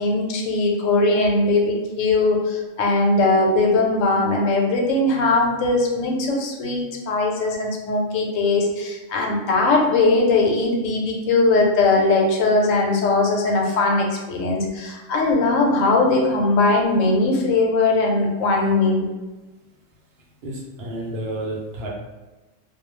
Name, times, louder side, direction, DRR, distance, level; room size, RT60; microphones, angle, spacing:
voice 1, 0.0-19.1, left 2 dB, 90° left, 0 dB, 1.0 m, -20 dB
voice 2, 20.4-21.9, right 1 dB, 65° right, -3 dB, 0.7 m, -30 dB
2.3 x 2.1 x 3.0 m, 1.1 s
omnidirectional pair, 1.3 m